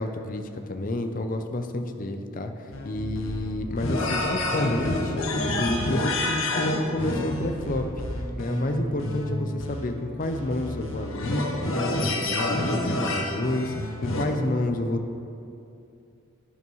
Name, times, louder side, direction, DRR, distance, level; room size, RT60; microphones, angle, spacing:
voice 1, 0.0-7.9 8.4-11.5 11.7-15.1, left 1 dB, 40° left, 6 dB, 0.6 m, -29 dB
sound 1, 2.7-14.2, left 1 dB, 85° left, 1.1 m, -29 dB
11.0 x 9.3 x 3.1 m, 2.6 s
head